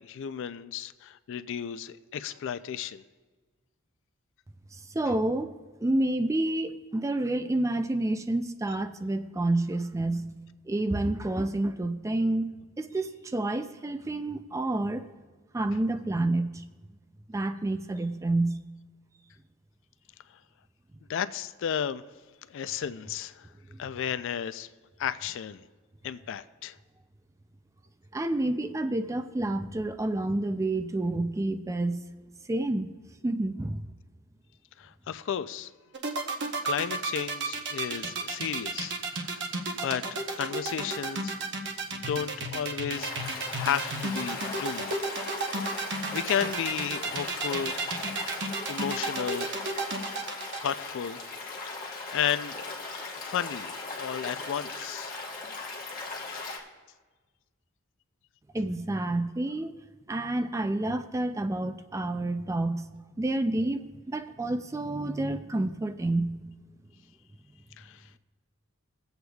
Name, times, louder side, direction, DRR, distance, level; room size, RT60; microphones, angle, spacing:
voice 1, 0.0-3.0 21.1-22.0 22.5-23.5 23.8-24.7 25.0-25.7 26.0-26.8 34.8-35.7 36.2-36.3 36.6-41.4 41.9-44.9 45.7-47.7 48.7-49.5 50.6-51.2 51.7-52.7 53.1-55.2 56.3-56.6 67.8-68.2, left 8 dB, 60° left, 14 dB, 0.3 m, -33 dB
voice 2, 4.7-10.3 10.7-15.1 15.5-16.6 17.3-18.6 23.7-23.8 28.1-32.0 32.5-32.9 33.2-33.9 58.5-59.7 60.1-62.9 63.2-66.3, right 2 dB, 15° right, 9 dB, 0.3 m, -29 dB
sound 1, 35.9-50.7, right 3 dB, 55° right, 0.9 m, -32 dB
Stream, 43.0-56.6, left 3 dB, 45° left, 1.4 m, -38 dB
23.0 x 7.9 x 2.3 m, 1.3 s
head